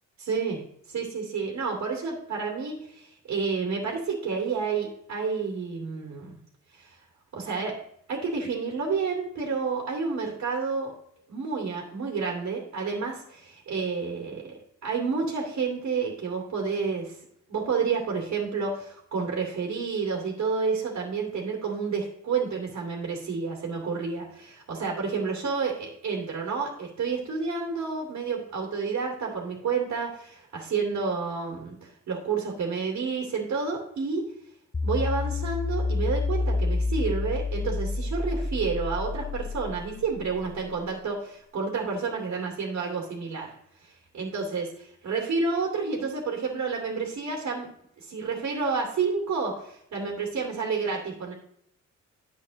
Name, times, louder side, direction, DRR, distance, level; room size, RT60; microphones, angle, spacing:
voice 1, 0.2-0.6 0.9-6.4 6.7-7.0 7.3-7.8 8.1-10.9 11.3-17.1 17.5-34.2 34.8-43.5 43.8-44.6 45.0-47.7 48.0-51.3, right 5 dB, 65° right, -1 dB, 2.5 m, -30 dB
sound 1, 34.7-41.0, left 3 dB, 15° left, 0.4 m, -29 dB
11.0 x 8.2 x 3.1 m, 0.70 s
cardioid pair, 90°, 30 cm